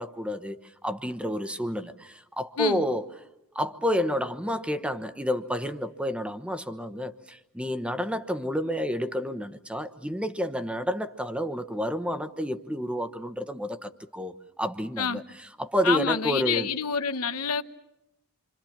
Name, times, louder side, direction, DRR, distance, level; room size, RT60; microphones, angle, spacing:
voice 1, 0.0-3.0 3.5-16.7, equal, 5° right, 1.0 m, -30 dB
voice 2, 15.8-17.6, left 6 dB, 90° left, 1.0 m, -27 dB
27.5 x 25.5 x 7.3 m
head